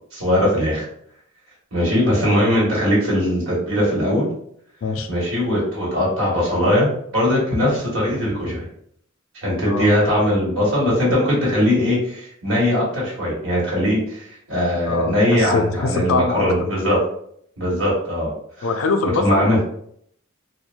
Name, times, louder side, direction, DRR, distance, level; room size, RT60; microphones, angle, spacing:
voice 1, 0.1-0.8 1.7-4.3 5.1-6.9 7.1-8.6 9.4-17.0 17.6-18.3 18.6-18.7 19.0-19.6, left 1 dB, 90° right, -5 dB, 1.4 m, -20 dB
voice 2, 14.9-16.5 18.6-19.6, left 3 dB, 85° left, 7 dB, 0.4 m, -23 dB
2.9 x 2.2 x 2.5 m, 0.68 s
head